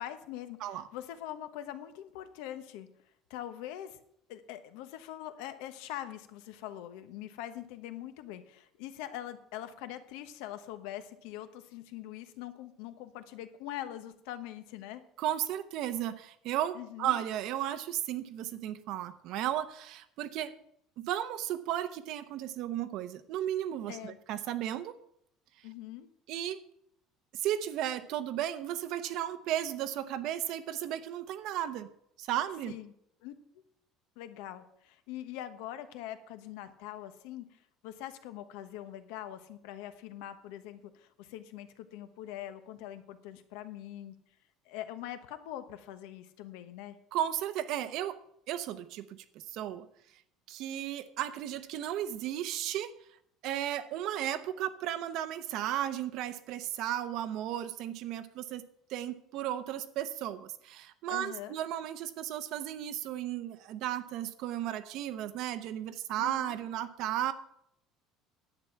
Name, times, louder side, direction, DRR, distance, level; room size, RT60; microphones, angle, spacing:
voice 1, 0.0-2.9 3.3-4.0 4.3-15.0 16.7-17.2 23.9-24.2 25.6-26.1 32.7-32.9 33.2-33.3 34.2-44.1 44.6-47.0 61.1-61.6 66.2-66.6, left 12 dB, 80° left, 10 dB, 1.2 m, -43 dB
voice 2, 15.2-20.5 21.0-24.9 26.3-26.6 27.4-31.9 32.2-32.7 47.1-48.2 48.5-49.9 50.5-52.9 53.4-58.6 58.9-67.3, right 11 dB, 50° right, 12 dB, 0.8 m, -34 dB
10.5 x 8.6 x 5.8 m, 0.72 s
cardioid pair, 175°, 0 cm